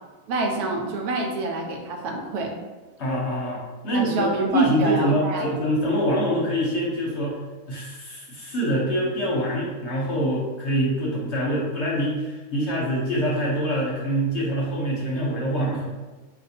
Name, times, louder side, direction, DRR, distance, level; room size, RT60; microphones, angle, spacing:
voice 1, 0.3-2.5 3.9-5.4, right 2 dB, 85° right, 1 dB, 1.1 m, -27 dB
voice 2, 3.0-7.4 7.7-15.9, equal, 55° left, -4 dB, 0.8 m, -25 dB
2.5 x 2.4 x 4.1 m, 1.2 s
omnidirectional pair, 1.6 m